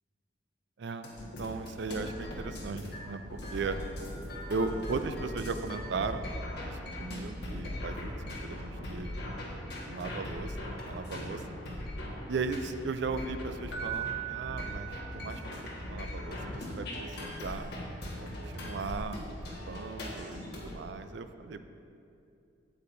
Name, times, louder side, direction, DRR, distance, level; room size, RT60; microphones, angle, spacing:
voice 1, 0.8-1.1 1.4-3.8 4.5-9.2 9.8-11.6 12.3-15.4 15.8-17.7 18.2-21.7, right 4 dB, 65° right, 9 dB, 0.4 m, -37 dB
sound 1, 1.0-20.7, left 1 dB, 60° left, 1.5 m, -40 dB
sound 2, 1.9-9.3, left 1 dB, 5° right, 0.6 m, -48 dB
Keyboard (musical), 13.7-15.7 18.9-19.1, right 10 dB, 80° left, 0.9 m, -39 dB
8.3 x 8.1 x 2.6 m, 2.6 s
head